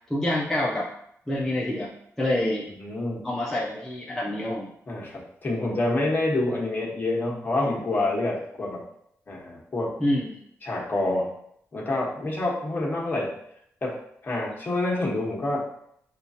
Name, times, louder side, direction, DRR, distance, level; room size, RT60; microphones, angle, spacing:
voice 1, 0.1-0.9 1.3-1.9 2.2-2.7 3.2-4.7 10.0-10.4, left 1 dB, 5° left, -4 dB, 0.6 m, -26 dB
voice 2, 2.8-3.3 4.9-8.8 9.3-10.0 10.6-11.3 11.7-13.3 13.8-14.0 14.2-15.7, left 2 dB, 35° left, -3 dB, 1.2 m, -27 dB
6.5 x 2.4 x 2.7 m, 0.72 s
wide cardioid pair, 120°, 6 cm